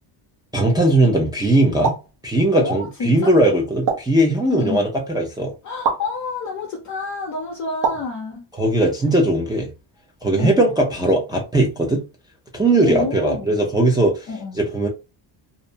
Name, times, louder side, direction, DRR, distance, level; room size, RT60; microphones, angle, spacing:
voice 1, 0.5-1.9 2.2-5.5 8.6-9.7 10.2-12.0 12.5-14.3 14.6-14.9, right 1 dB, 10° right, 0.3 m, -19 dB
sound 1, 1.8-2.1 3.9-4.2 5.8-6.1 7.8-8.1, right 5 dB, 40° right, 0.9 m, -23 dB
voice 2, 2.6-3.3 4.5-4.9 5.6-8.4 10.4-10.6 12.7-13.7 14.3-14.6, left 4 dB, 40° left, 0.6 m, -28 dB
2.5 x 2.0 x 2.7 m
cardioid pair, 125°, 49 cm